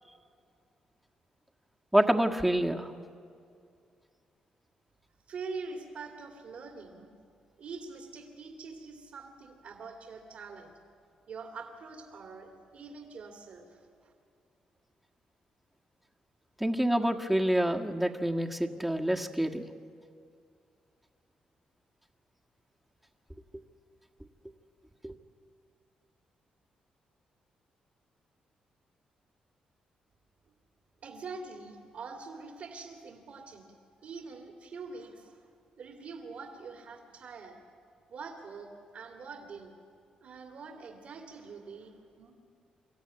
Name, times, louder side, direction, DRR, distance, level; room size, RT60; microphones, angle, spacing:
voice 1, 1.9-2.9 16.6-19.7 25.0-25.1, right 1 dB, 5° right, 2 dB, 1.6 m, -27 dB
voice 2, 5.3-7.1 7.6-10.7 11.3-14.1 31.0-33.6 34.0-35.5 35.8-37.6 38.1-39.7 40.2-42.3, right 4 dB, 65° right, 2 dB, 2.6 m, -44 dB
25.0 x 13.5 x 9.7 m, 2.3 s
cardioid pair, 70°, 2 cm